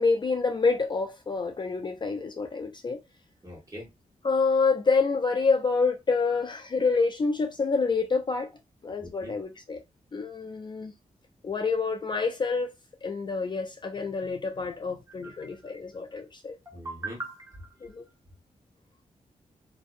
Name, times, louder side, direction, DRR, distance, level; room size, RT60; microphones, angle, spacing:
voice 1, 0.0-3.0 4.2-8.5 8.8-9.8 10.1-10.9 11.4-12.7 13.0-16.6 17.8-18.1, left 4 dB, 35° left, 0.4 m, -27 dB
voice 2, 3.4-3.9 6.3-6.4 9.0-9.3 14.7-14.8 15.2-15.7 16.7-18.0, right 1 dB, 25° right, 1.3 m, -41 dB
2.6 x 2.0 x 2.4 m
cardioid pair, 85°, 13 cm